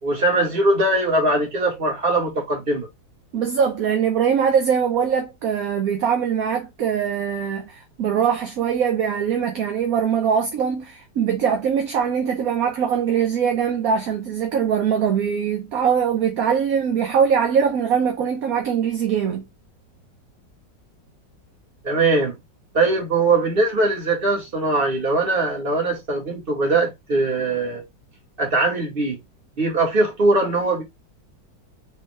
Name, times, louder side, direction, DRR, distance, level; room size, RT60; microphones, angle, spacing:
voice 1, 0.0-2.9 21.8-22.4 22.7-27.8 28.4-29.2 29.6-30.8, right 2 dB, 30° right, 1.9 m, -21 dB
voice 2, 3.3-19.4, right 7 dB, 60° right, 1.1 m, -22 dB
5.3 x 2.9 x 3.4 m
omnidirectional pair, 2.0 m